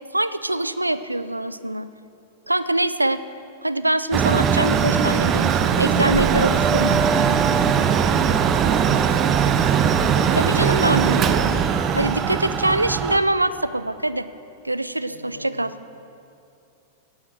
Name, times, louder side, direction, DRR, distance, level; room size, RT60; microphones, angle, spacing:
voice 1, 0.1-1.9 2.5-3.2 3.6-7.0 10.2-11.5 11.9-14.3 14.6-15.7, right 1 dB, 90° right, 14 dB, 0.3 m, -24 dB
Mechanical fan, 4.1-13.2, right 7 dB, 30° right, 0.5 m, -20 dB
voice 2, 8.0-10.2 15.1-15.7, left 1 dB, 90° left, 5 dB, 0.9 m, -41 dB
9.9 x 8.7 x 6.2 m, 2.6 s
figure-of-eight pair, 95°, 0 cm